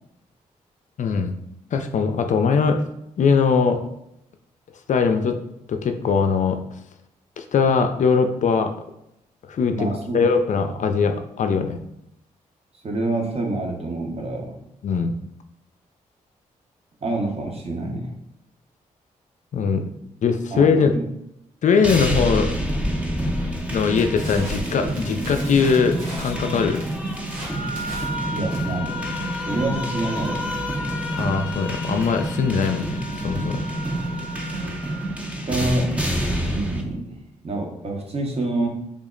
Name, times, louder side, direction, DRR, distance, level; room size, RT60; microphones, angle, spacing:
voice 1, 1.0-1.4 1.7-2.8 3.2-3.8 4.9-5.4 5.7-6.6 7.4-8.7 9.5-9.9 10.1-11.8 14.8-15.1 19.5-19.9 20.2-21.0 21.6-22.5 23.3-23.4 23.7-26.8 31.2-33.6, left 5 dB, 60° left, 6 dB, 0.4 m, -21 dB
voice 2, 9.7-10.2 12.8-14.6 17.0-18.1 20.5-20.7 20.9-21.0 28.3-29.2 29.5-30.5 34.6-34.8 35.5-36.0 36.5-37.1 37.4-38.7, right 2 dB, 45° right, 1 dB, 0.9 m, -27 dB
sound 1, 21.8-36.8, right 1 dB, 10° right, 0.6 m, -28 dB
Crackle, 22.8-34.8, equal, 80° right, 1.1 m, -38 dB
Wind instrument woodwind instrument, 27.5-35.4, left 2 dB, 35° left, 0.8 m, -36 dB
3.5 x 2.0 x 3.7 m, 0.81 s
supercardioid pair, 55°, 15 cm